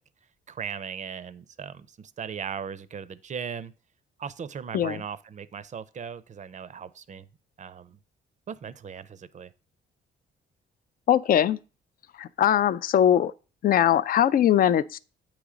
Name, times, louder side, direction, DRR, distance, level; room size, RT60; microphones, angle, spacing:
voice 1, 0.5-3.7 4.2-7.3 7.6-8.0 8.5-9.5, right 7 dB, 40° right, 0.5 m, -38 dB
voice 2, 11.1-11.6 12.2-13.3 13.6-15.0, left 10 dB, 45° left, 0.4 m, -21 dB
8.4 x 3.0 x 4.9 m
cardioid pair, 90°, 20 cm